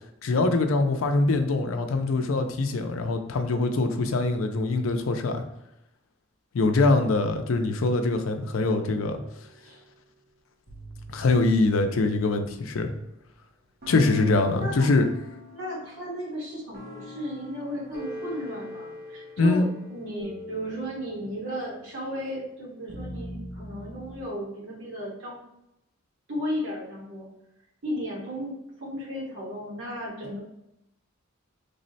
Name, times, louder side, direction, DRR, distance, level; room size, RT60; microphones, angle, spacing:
voice 1, 0.2-5.4 6.5-9.2 11.1-12.9 13.9-15.0 19.4-19.7, left 3 dB, 75° left, 6 dB, 0.5 m, -23 dB
sound 1, 8.8-10.0 10.7-13.2 13.8-24.2, equal, 50° right, 0.7 m, -43 dB
voice 2, 15.5-25.4 26.3-27.3 27.8-30.4, equal, 70° right, -4 dB, 1.3 m, -34 dB
3.4 x 2.1 x 3.9 m, 0.85 s
head